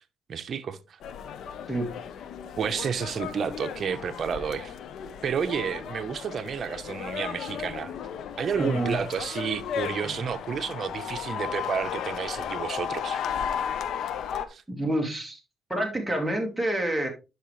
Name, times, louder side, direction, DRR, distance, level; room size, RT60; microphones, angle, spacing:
voice 1, 0.3-1.0 2.6-4.7 5.2-7.9 8.4-13.2 14.5-14.6, right 7 dB, 55° right, 0.8 m, -31 dB
sound 1, 1.0-14.5, left 8 dB, 75° left, 0.8 m, -35 dB
voice 2, 8.6-9.0 10.0-10.2 14.7-15.4 15.7-17.1, right 1 dB, ahead, 2.0 m, -28 dB
11.0 x 5.0 x 3.2 m
cardioid pair, 90°, 0 cm